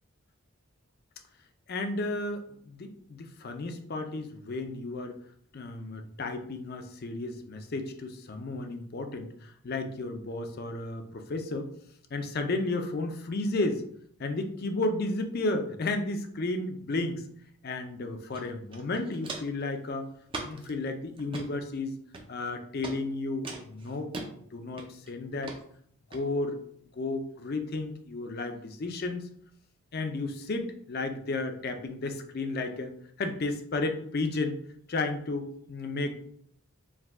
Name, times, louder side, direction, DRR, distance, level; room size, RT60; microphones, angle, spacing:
voice 1, 1.7-5.2 5.5-11.7 12.1-13.8 14.2-17.2 17.6-20.1 20.4-22.0 22.3-24.1 24.5-25.5 26.1-26.6 26.9-29.3 29.9-32.9 33.2-34.6 34.9-36.1, left 2 dB, 45° left, 6 dB, 0.4 m, -33 dB
Walk footsteps, 18.3-18.4 18.7-19.6 20.3-20.7 21.2-21.5 22.1-22.5 22.8-23.0 23.4-24.3 24.8-25.1 25.4-25.6 26.1-26.2, right 2 dB, 25° right, 0.4 m, -39 dB
4.7 x 2.3 x 3.5 m, 0.66 s
head